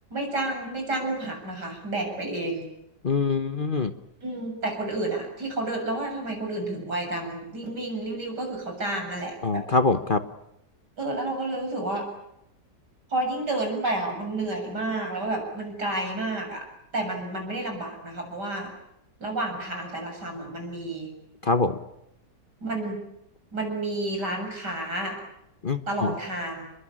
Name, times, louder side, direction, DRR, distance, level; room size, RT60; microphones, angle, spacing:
voice 1, 0.1-2.7 4.2-9.6 11.0-12.1 13.1-16.6 16.9-18.7 19.2-21.1 22.6-23.0 23.5-25.2 25.9-26.6, right 2 dB, 85° right, 2 dB, 8.1 m, -30 dB
voice 2, 3.0-3.9 9.4-10.2 21.4-21.8 25.6-26.1, left 3 dB, 35° left, 10 dB, 1.1 m, -24 dB
29.5 x 21.5 x 8.8 m, 0.83 s
omnidirectional pair, 1.8 m